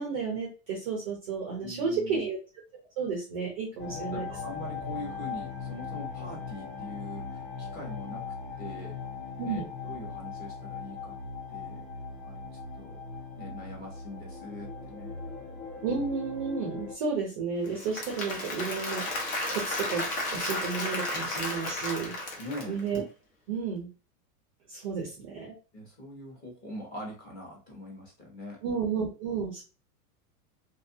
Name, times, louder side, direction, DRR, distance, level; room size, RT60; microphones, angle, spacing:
voice 1, 0.0-2.4 3.0-4.2 9.4-9.7 15.8-20.0 20.3-22.1 22.6-23.0 23.5-23.9 24.7-25.5 28.6-29.6, right 5 dB, 25° right, -2 dB, 0.4 m, -32 dB
voice 2, 1.6-2.3 3.9-9.0 9.4-11.1 11.5-11.8 12.2-12.5 12.8-13.0 13.4-15.1 22.4-22.8 25.7-28.6, left 1 dB, 20° left, -2 dB, 0.8 m, -43 dB
sound 1, 3.8-16.9, left 5 dB, 75° left, 1.4 m, -39 dB
Applause / Crowd, 17.6-23.0, left 1 dB, 55° left, 1.0 m, -33 dB
2.6 x 2.3 x 2.6 m, 0.34 s
supercardioid pair, 160°, 47 cm